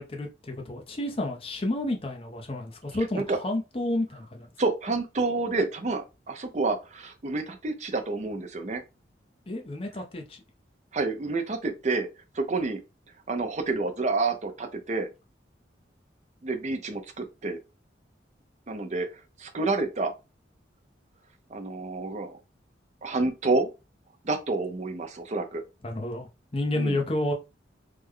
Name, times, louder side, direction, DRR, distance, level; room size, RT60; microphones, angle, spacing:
voice 1, 0.0-4.5 9.5-10.4 25.8-27.3, left 1 dB, 30° left, 0.6 m, -30 dB
voice 2, 4.6-8.8 10.9-12.1 12.3-12.8 13.3-15.1 16.4-17.6 18.7-19.1 19.4-20.1 21.5-22.4 23.0-23.7 24.2-25.6 26.7-27.0, right 3 dB, 40° right, 0.5 m, -29 dB
3.3 x 2.1 x 3.6 m
head